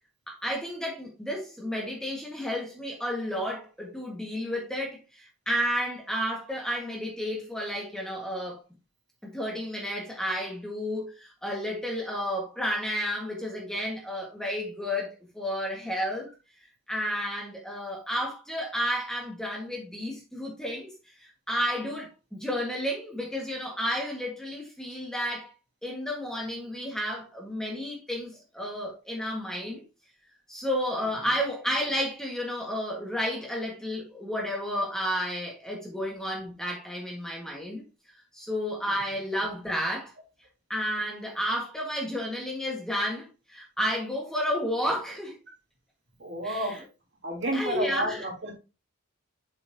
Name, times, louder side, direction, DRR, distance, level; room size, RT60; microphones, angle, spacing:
voice 1, 0.3-8.6 9.2-16.3 16.9-25.5 25.8-29.8 30.5-37.8 38.3-40.1 40.7-45.4 46.4-46.8 47.5-48.2, equal, 5° left, 1.6 m, -32 dB
voice 2, 46.2-46.8 47.2-48.6, right 1 dB, 55° right, 3.1 m, -31 dB
7.3 x 6.1 x 2.8 m
head